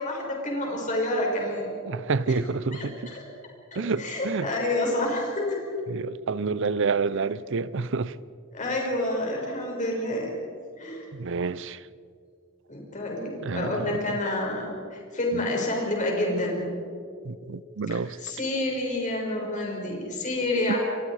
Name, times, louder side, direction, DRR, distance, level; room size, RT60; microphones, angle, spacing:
voice 1, 0.0-1.7 2.3-2.4 2.7-3.2 3.7-5.6 8.5-10.3 10.8-11.0 12.7-16.7 18.2-20.8, left 1 dB, 35° left, 5.9 m, -28 dB
voice 2, 1.9-3.1 3.8-4.5 5.9-8.2 11.1-11.8 13.4-14.2 15.3-15.4 17.2-18.2 20.7-20.8, right 4 dB, 60° right, 0.6 m, -29 dB
28.5 x 22.5 x 4.9 m
head